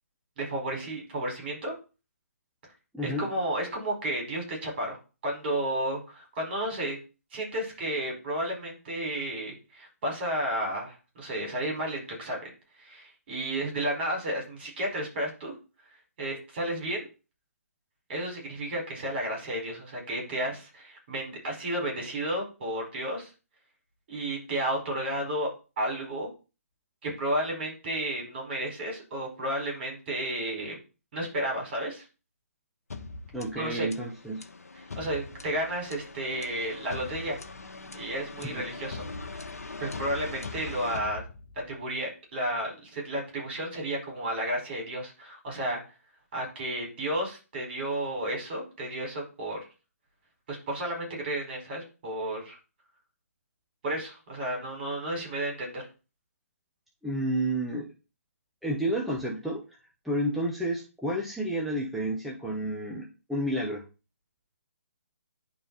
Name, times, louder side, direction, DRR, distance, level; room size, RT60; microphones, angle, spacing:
voice 1, 0.4-1.7 3.0-5.0 5.2-7.0 7.3-12.4 12.8-15.5 16.2-17.1 18.1-23.3 24.1-25.5 25.8-26.3 27.0-30.8 31.1-32.0 33.5-33.9 34.9-37.4 37.9-39.5 39.8-41.2 41.7-45.8 46.3-49.6 50.5-52.6 53.8-55.8, right 1 dB, 40° right, 0 dB, 5.0 m, -32 dB
voice 2, 2.9-3.3 33.3-34.5 38.4-38.6 57.0-57.9 58.6-59.6 60.0-63.8, right 1 dB, ahead, -4 dB, 1.2 m, -30 dB
sound 1, 32.9-41.8, left 3 dB, 75° left, 1.1 m, -41 dB
10.5 x 4.5 x 4.1 m, 0.32 s
figure-of-eight pair, 140°, 8 cm